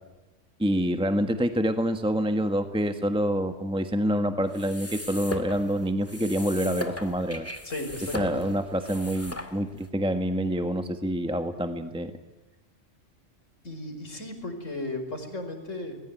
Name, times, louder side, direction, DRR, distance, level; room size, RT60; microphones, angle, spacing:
voice 1, 0.6-7.5 8.1-12.1, equal, 5° right, 7 dB, 1.3 m, -27 dB
sound 1, 4.5-9.9, left 1 dB, 10° left, 2.3 m, -38 dB
voice 2, 7.6-8.5 13.6-16.0, left 2 dB, 90° left, 6 dB, 5.1 m, -35 dB
29.0 x 21.5 x 9.3 m, 1.1 s
omnidirectional pair, 1.3 m